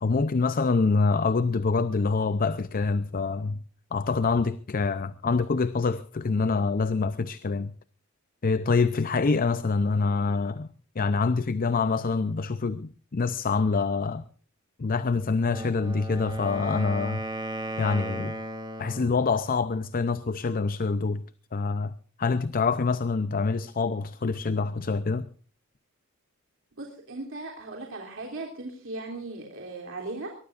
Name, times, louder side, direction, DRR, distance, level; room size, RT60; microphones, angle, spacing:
voice 1, 0.0-3.6 3.9-7.7 8.4-10.7 11.0-14.3 14.8-17.2 17.8-18.3 18.8-21.2 21.5-25.3, left 4 dB, 45° left, 0.6 m, -26 dB
Wind instrument woodwind instrument, 15.4-19.2, right 1 dB, 20° right, 2.3 m, -36 dB
voice 2, 26.8-30.4, right 2 dB, 70° right, 3.2 m, -37 dB
23.0 x 19.0 x 2.5 m
head